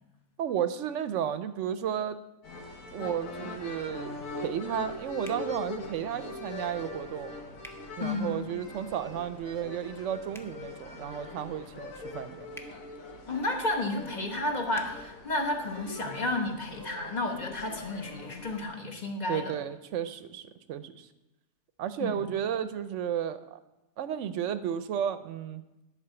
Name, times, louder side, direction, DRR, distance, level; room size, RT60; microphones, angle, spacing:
voice 1, 0.4-2.2 2.9-7.3 8.0-12.5 19.3-21.1 21.8-23.6 24.0-25.6, right 9 dB, 70° right, 12 dB, 0.9 m, -33 dB
sound 1, 2.4-18.7, left 2 dB, 85° left, 1.5 m, -42 dB
sound 2, 5.2-5.5 7.6-7.8 10.3-10.5 12.5-12.7 14.7-14.9, equal, 5° left, 0.5 m, -47 dB
voice 2, 8.0-8.4 13.3-19.5 22.0-22.2, left 2 dB, 35° left, 3 dB, 1.2 m, -32 dB
11.0 x 4.8 x 6.7 m, 0.95 s
omnidirectional pair, 1.4 m